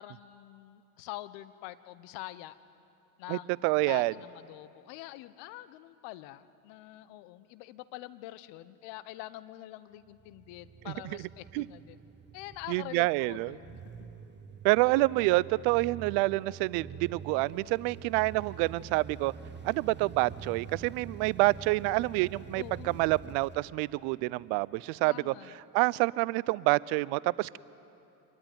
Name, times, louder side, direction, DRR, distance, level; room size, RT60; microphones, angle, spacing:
voice 1, 0.0-2.6 3.2-3.5 3.8-12.0 12.3-14.1 22.6-23.2 25.0-25.6, left 16 dB, 65° left, 1.2 m, -45 dB
voice 2, 3.3-4.1 11.5-11.6 12.7-13.6 14.6-19.3 19.6-25.3 25.7-27.6, right 22 dB, 60° right, 0.6 m, -27 dB
sound 1, 10.1-24.4, right 6 dB, 25° right, 1.6 m, -47 dB
26.0 x 21.5 x 9.5 m
hypercardioid pair, 65°, 46 cm